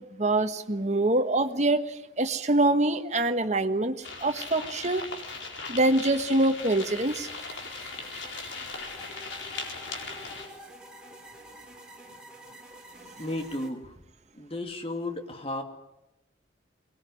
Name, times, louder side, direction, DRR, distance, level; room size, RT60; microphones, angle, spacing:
voice 1, 0.0-5.0 5.7-7.3, right 2 dB, 40° right, 7 dB, 1.4 m, -25 dB
sound 1, 4.0-10.5, left 4 dB, 80° left, 4.4 m, -39 dB
sound 2, 6.9-13.7, right 1 dB, 5° right, 3.4 m, -48 dB
voice 2, 13.2-14.0 14.3-15.6, left 1 dB, 30° left, 5 dB, 2.4 m, -34 dB
24.0 x 20.5 x 9.6 m, 0.93 s
head